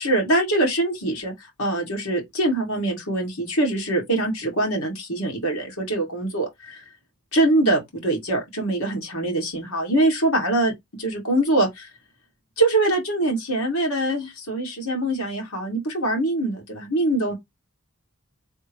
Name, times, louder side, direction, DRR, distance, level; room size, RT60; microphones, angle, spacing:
voice 1, 0.0-1.3 1.6-6.8 7.3-10.7 11.0-11.9 12.6-17.3, right 1 dB, 75° left, 2.2 m, -23 dB
3.6 x 2.6 x 4.3 m
head